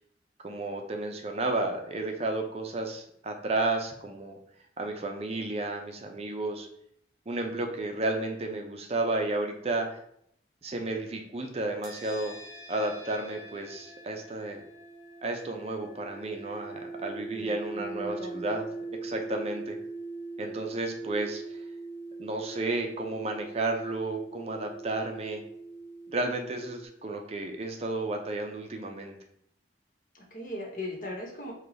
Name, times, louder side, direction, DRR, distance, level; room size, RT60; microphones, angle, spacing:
voice 1, 0.4-4.4 4.8-6.7 7.3-10.0 10.6-12.4 12.7-14.6 15.2-18.7 19.0-19.8 20.4-21.6 22.2-25.4 26.1-29.2, right 2 dB, 35° right, 3 dB, 0.5 m, -32 dB
sound 1, 11.8-26.9, right 3 dB, 20° right, 1.3 m, -42 dB
voice 2, 17.3-18.5 30.1-31.5, left 1 dB, 50° left, 0 dB, 1.1 m, -39 dB
4.8 x 2.3 x 3.9 m, 0.70 s
head